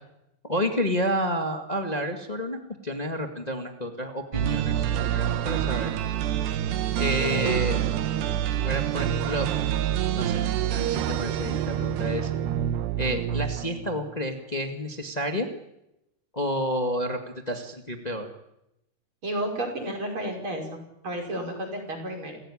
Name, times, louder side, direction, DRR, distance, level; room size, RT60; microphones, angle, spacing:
voice 1, 0.4-5.9 6.9-7.8 8.6-9.5 10.1-10.4 10.7-12.3 13.0-15.5 16.3-17.2 17.5-18.3, equal, 60° left, 4 dB, 0.4 m, -30 dB
sound 1, 4.3-14.2, right 10 dB, 85° right, 3.3 m, -27 dB
voice 2, 19.2-22.4, right 1 dB, 30° right, 2 dB, 6.4 m, -32 dB
28.5 x 16.5 x 10.0 m, 0.86 s
omnidirectional pair, 4.6 m